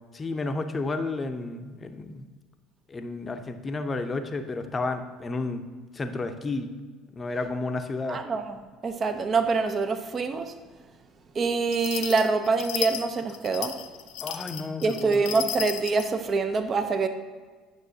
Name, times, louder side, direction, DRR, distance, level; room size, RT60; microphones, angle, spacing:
voice 1, 0.1-2.3 2.9-5.6 5.9-6.7 7.1-8.2 14.2-15.2, left 3 dB, 25° left, 8 dB, 0.6 m, -31 dB
voice 2, 8.1-8.6 8.8-10.5 11.3-13.8 14.8-17.1, right 4 dB, 40° right, 8 dB, 0.7 m, -25 dB
sound 1, 11.7-16.1, left 11 dB, 65° left, 0.4 m, -34 dB
8.9 x 6.1 x 2.7 m, 1.4 s
hypercardioid pair, 65°, 0 cm